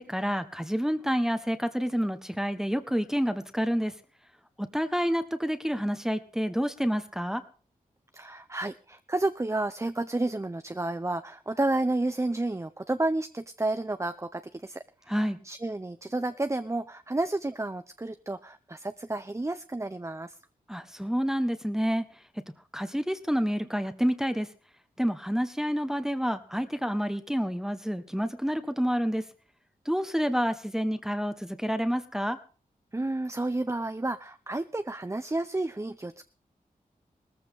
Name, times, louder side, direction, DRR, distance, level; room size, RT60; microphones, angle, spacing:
voice 1, 0.0-3.9 4.6-7.4 15.1-15.4 20.7-22.0 22.7-24.5 25.0-29.2 29.8-32.4, equal, 5° right, 9 dB, 1.4 m, -28 dB
voice 2, 8.1-20.4 32.9-36.2, right 2 dB, 20° right, 11 dB, 0.8 m, -31 dB
18.0 x 14.5 x 3.7 m, 0.38 s
cardioid pair, 50°, 15 cm